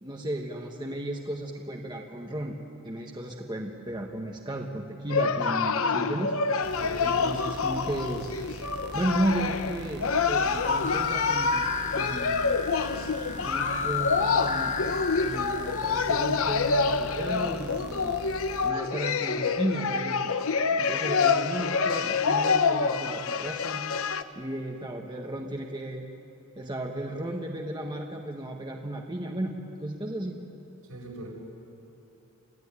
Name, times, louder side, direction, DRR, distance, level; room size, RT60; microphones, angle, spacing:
voice 1, 0.0-2.6 2.8-6.3 7.0-8.2 8.9-11.6 11.9-12.6 13.4-14.8 15.1-18.1 18.6-20.2 20.8-23.8 24.3-26.1 26.5-30.4, right 1 dB, 20° right, 1 dB, 1.4 m, -34 dB
sound 1, 5.1-24.2, left 5 dB, 75° left, 0.9 m, -27 dB
sound 2, 6.6-18.7, right 3 dB, 50° right, 0.8 m, -43 dB
voice 2, 6.8-7.2 30.9-31.3, right 1 dB, 80° right, -3 dB, 7.6 m, -40 dB
sound 3, 10.5-16.3, left 5 dB, 35° left, 0.9 m, -33 dB
28.0 x 15.5 x 9.8 m, 3.0 s
head